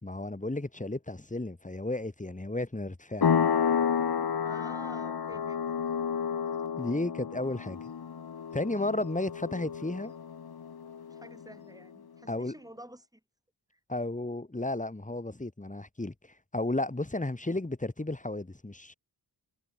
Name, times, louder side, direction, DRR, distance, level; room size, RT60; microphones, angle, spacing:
voice 1, 0.0-3.3 6.8-7.8 8.5-10.1 12.3-12.5 13.9-16.1 16.5-18.9, left 2 dB, 20° left, 5.4 m, -33 dB
sound 1, 3.2-11.6, left 7 dB, 65° left, 2.4 m, -31 dB
voice 2, 4.4-5.6 11.1-13.2 13.7-13.8, right 1 dB, 10° right, 6.1 m, -50 dB
wide cardioid pair, 90°, 41 cm